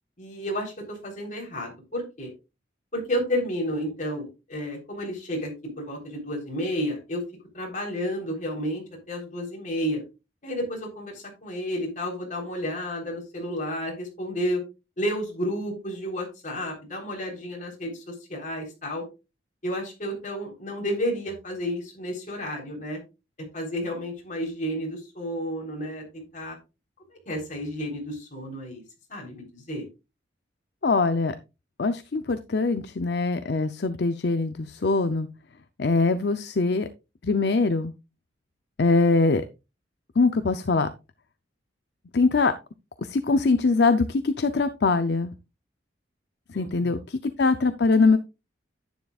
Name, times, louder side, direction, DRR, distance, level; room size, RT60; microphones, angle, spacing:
voice 1, 0.2-2.3 2.9-7.2 7.5-10.0 10.4-14.6 15.0-19.0 19.6-23.0 23.4-26.6 27.3-28.8 29.1-29.9 46.5-47.0, equal, 40° left, 0 dB, 3.7 m, -31 dB
voice 2, 30.8-31.4 31.8-35.3 35.8-36.9 37.2-37.9 38.8-39.5 40.2-40.9 42.1-42.5 43.0-45.3 46.5-48.2, left 3 dB, 60° left, 10 dB, 0.5 m, -22 dB
10.5 x 9.4 x 2.4 m, 0.27 s
head